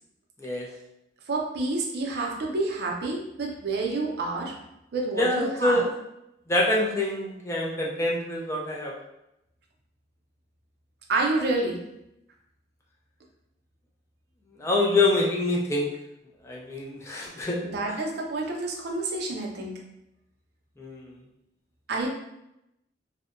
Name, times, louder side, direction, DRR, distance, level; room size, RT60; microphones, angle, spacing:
voice 1, 1.3-4.5 4.9-5.9 11.1-11.8 17.6-19.8 21.9-22.1, right 2 dB, 60° right, 0 dB, 0.5 m, -28 dB
voice 2, 5.2-5.9 6.5-8.9 14.6-15.9 16.4-17.6 20.8-21.2, left 2 dB, 15° left, -3 dB, 0.4 m, -25 dB
2.7 x 2.1 x 2.4 m, 0.84 s
head